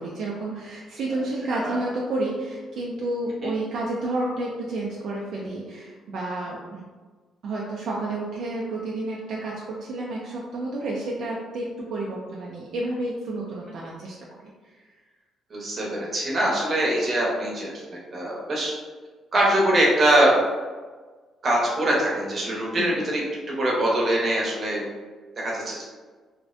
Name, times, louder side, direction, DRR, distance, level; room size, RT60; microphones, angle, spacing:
voice 1, 0.0-6.9 7.4-14.2 14.6-14.7 22.8-23.0, right 2 dB, 70° right, -4 dB, 0.3 m, -30 dB
voice 2, 1.5-1.8 3.4-3.5 15.5-18.7 19.3-20.4 21.4-24.8 25.4-25.8, right 1 dB, 45° right, -4 dB, 0.8 m, -23 dB
2.5 x 2.1 x 2.5 m, 1.4 s
cardioid pair, 90°, 0 cm